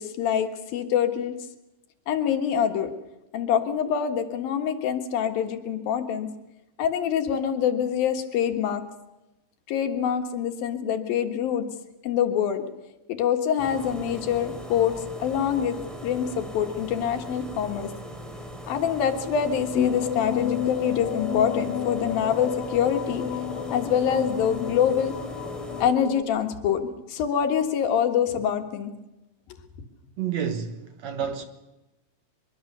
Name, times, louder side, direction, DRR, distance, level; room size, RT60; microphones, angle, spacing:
voice 1, 0.0-1.3 2.1-2.9 3.3-6.3 6.8-8.8 9.7-11.7 12.0-12.6 13.1-14.9 15.2-15.8 16.0-17.9 18.7-23.2 23.7-25.1 25.8-28.9, left 8 dB, 85° left, 3.4 m, -25 dB
sound 1, 13.6-25.9, equal, ahead, 3.4 m, -40 dB
sound 2, 19.7-26.2, left 8 dB, 50° left, 2.3 m, -31 dB
voice 2, 30.2-31.4, right 8 dB, 60° right, 2.1 m, -30 dB
23.0 x 22.5 x 6.8 m
omnidirectional pair, 4.0 m